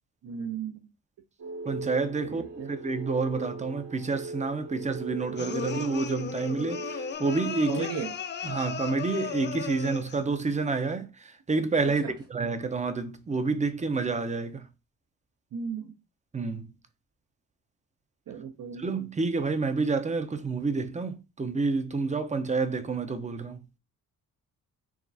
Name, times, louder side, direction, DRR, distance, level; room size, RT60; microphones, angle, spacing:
voice 1, 0.2-0.7 2.4-2.7 7.7-8.1 12.0-12.1 15.5-15.9 18.3-18.9, right 6 dB, 60° right, 0.8 m, -35 dB
sound 1, 1.4-7.1, right 2 dB, 85° right, 2.5 m, -39 dB
voice 2, 1.6-2.4 2.7-7.9 8.4-14.7 16.3-16.7 18.8-23.6, right 4 dB, 20° right, 0.6 m, -29 dB
sound 2, 5.4-10.3, left 7 dB, 30° left, 0.4 m, -36 dB
4.9 x 3.1 x 2.7 m
cardioid pair, 85°, 38 cm